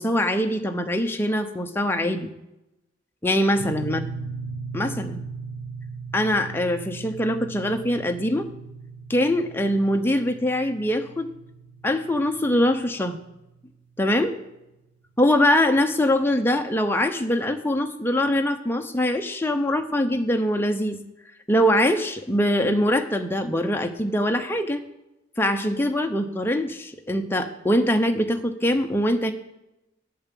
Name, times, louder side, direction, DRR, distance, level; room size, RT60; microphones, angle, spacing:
voice 1, 0.0-2.3 3.2-4.0 4.7-5.2 6.1-8.5 9.1-11.3 11.8-13.2 14.0-14.3 15.2-21.0 21.5-24.8 25.4-29.3, left 1 dB, 10° left, 5 dB, 0.7 m, -23 dB
sound 1, 3.6-13.7, right 4 dB, 85° right, 1.9 m, -38 dB
8.5 x 7.1 x 7.6 m, 0.93 s
head